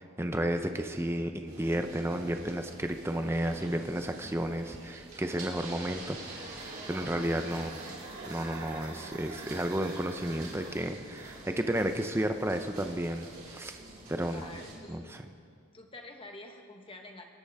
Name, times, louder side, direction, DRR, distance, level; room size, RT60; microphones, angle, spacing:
voice 1, 0.0-7.7 8.3-13.8 14.1-14.5 14.9-15.2, right 1 dB, 10° right, 6 dB, 0.6 m, -32 dB
sound 1, 1.5-14.7, right 2 dB, 40° right, 3.3 m, -46 dB
sound 2, 6.1-12.3, right 3 dB, 80° right, 3.2 m, -48 dB
voice 2, 7.5-8.0 14.2-15.2 15.7-17.2, left 2 dB, 25° left, 3 dB, 1.2 m, -48 dB
26.0 x 10.5 x 3.6 m, 2.3 s
head